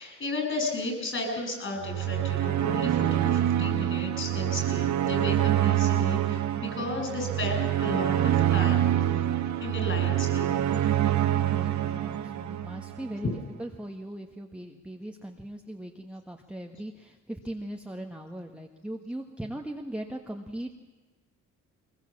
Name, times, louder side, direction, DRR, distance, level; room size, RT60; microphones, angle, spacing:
voice 1, 0.0-6.4 6.7-8.9 9.6-10.5, left 2 dB, 40° left, 3 dB, 7.5 m, -34 dB
sound 1, 1.8-13.1, right 12 dB, 65° right, 1.3 m, -26 dB
voice 2, 11.4-13.3 13.6-20.7, right 1 dB, 5° right, 1 dB, 1.6 m, -39 dB
22.0 x 21.0 x 7.4 m, 1.2 s
cardioid pair, 90°, 30 cm